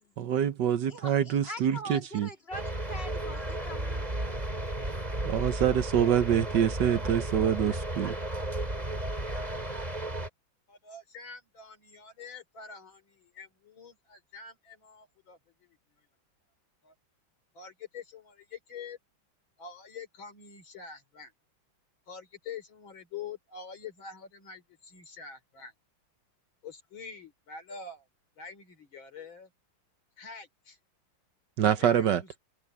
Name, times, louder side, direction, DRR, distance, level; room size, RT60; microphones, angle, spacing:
voice 1, 0.2-2.3 5.2-8.2 31.6-32.2, right 9 dB, 65° right, 1.5 m, -26 dB
voice 2, 0.9-4.4, equal, 30° left, 3.4 m, -43 dB
sound 1, 2.5-10.3, right 1 dB, 20° right, 3.9 m, -33 dB
voice 3, 10.7-15.8 16.8-16.9 17.5-19.0 19.6-21.3 22.1-25.7 26.6-28.1 28.4-29.5 30.2-30.8 31.8-32.3, left 5 dB, 85° left, 4.2 m, -46 dB
open air
omnidirectional pair, 2.1 m